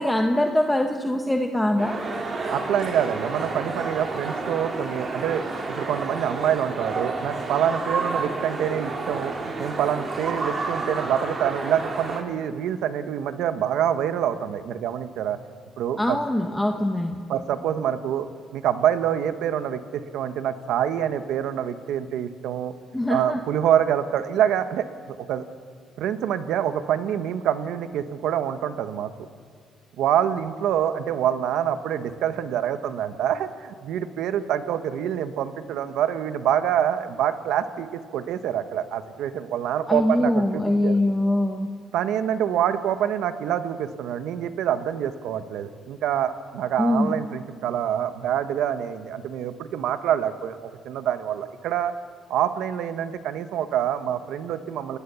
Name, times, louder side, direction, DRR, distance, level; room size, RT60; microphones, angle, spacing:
voice 1, 0.0-2.1 16.0-17.2 22.9-23.4 39.9-41.7 46.8-47.1, left 1 dB, 10° left, 3 dB, 1.5 m, -23 dB
sound 1, 1.8-12.2, right 3 dB, 40° right, 4.7 m, -30 dB
voice 2, 2.5-15.4 15.8-16.2 17.3-18.3 18.5-22.7 23.1-25.4 26.0-29.1 30.0-41.0 41.9-51.9 52.3-55.0, right 10 dB, 85° right, 10 dB, 1.3 m, -26 dB
30.0 x 18.5 x 7.1 m, 2.1 s
cardioid pair, 90°, 0 cm